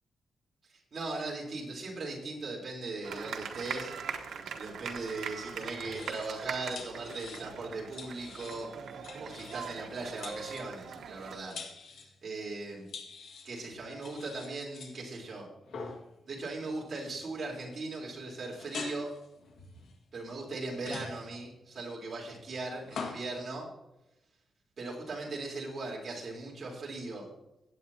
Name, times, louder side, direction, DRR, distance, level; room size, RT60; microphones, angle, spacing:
voice 1, 0.9-3.9 4.6-8.7 9.2-11.6 12.2-12.9 13.4-15.5 16.3-19.1 20.1-23.7 24.8-27.3, right 3 dB, 40° right, -3 dB, 3.7 m, -39 dB
sound 1, 3.0-11.4, right 6 dB, 85° right, 1.3 m, -41 dB
sound 2, 5.7-6.4 6.7-7.6 7.9-8.7 9.0-9.8 10.0-12.1 12.9-13.6 14.0-15.0 15.6-16.1 17.0-17.3 17.5-17.8 18.5-20.2 20.7-21.4 22.4-23.3, left 4 dB, 75° left, 1.9 m, -45 dB
16.5 x 8.8 x 2.8 m, 0.92 s
wide cardioid pair, 175°, 0 cm